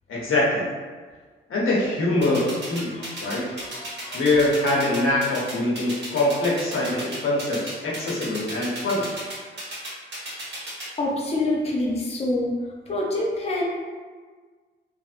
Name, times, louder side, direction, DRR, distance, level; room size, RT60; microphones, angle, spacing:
voice 1, 0.1-0.7 1.5-3.4 4.1-9.1, left 2 dB, 85° left, -5 dB, 0.8 m, -23 dB
sound 1, 2.2-10.9, right 1 dB, 60° right, 1.1 m, -34 dB
voice 2, 2.8-4.2 11.0-12.5 12.9-13.6, left 2 dB, 30° left, -3 dB, 0.5 m, -27 dB
3.0 x 2.6 x 2.4 m, 1.5 s
cardioid pair, 90°, 21 cm